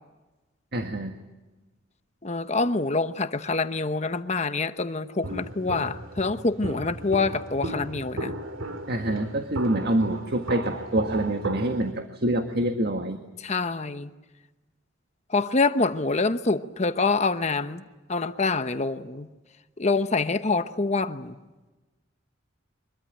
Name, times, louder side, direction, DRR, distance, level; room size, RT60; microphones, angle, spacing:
voice 1, 0.7-1.1 8.9-13.2, right 1 dB, 55° right, 1.7 m, -26 dB
voice 2, 2.2-8.3 13.4-14.1 15.3-17.8 18.1-19.3 19.8-21.4, left 3 dB, 35° left, 0.9 m, -26 dB
Walk footsteps, 5.2-11.9, right 1 dB, 85° right, 2.2 m, -35 dB
24.5 x 22.5 x 9.1 m
head